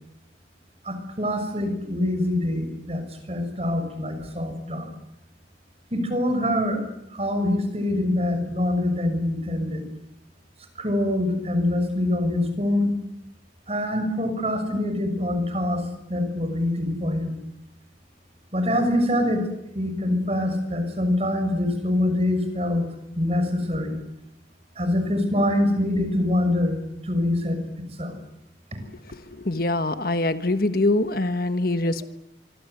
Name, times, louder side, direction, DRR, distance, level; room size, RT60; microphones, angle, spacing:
voice 1, 0.9-3.0 3.3-4.9 5.9-6.8 7.1-9.8 10.8-12.9 13.7-17.3 18.5-19.5 19.7-22.8 23.2-24.0 24.8-26.8 27.1-27.6 28.0-28.1, left 1 dB, 35° right, 7 dB, 6.2 m, -24 dB
voice 2, 29.1-32.0, left 2 dB, 55° left, 9 dB, 1.4 m, -24 dB
26.5 x 25.0 x 8.1 m, 0.80 s
head